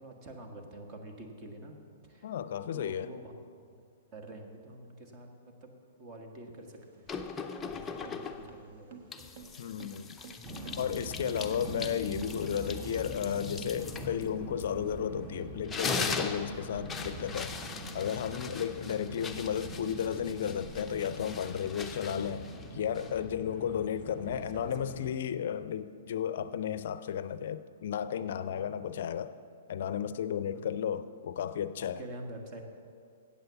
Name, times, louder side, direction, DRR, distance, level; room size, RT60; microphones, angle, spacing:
voice 1, 0.0-1.8 2.0-2.3 2.7-3.3 4.1-7.1 7.6-9.4 23.6-23.7 24.3-24.7 30.5-30.8 31.8-32.6, right 1 dB, 35° right, 3 dB, 1.5 m, -47 dB
voice 2, 2.2-3.1 9.6-10.2 10.8-17.5 17.9-22.5 22.7-29.3 29.7-32.0, left 9 dB, 65° left, 14 dB, 0.4 m, -33 dB
sound 1, 6.6-11.3, right 5 dB, 55° right, 1.0 m, -54 dB
sound 2, 7.1-8.6 9.1-15.2 15.5-23.3, left 4 dB, 10° left, 0.6 m, -40 dB
sound 3, 10.4-25.1, right 1 dB, 15° right, 1.4 m, -43 dB
8.4 x 7.8 x 6.9 m, 2.3 s
hypercardioid pair, 130°, 0 cm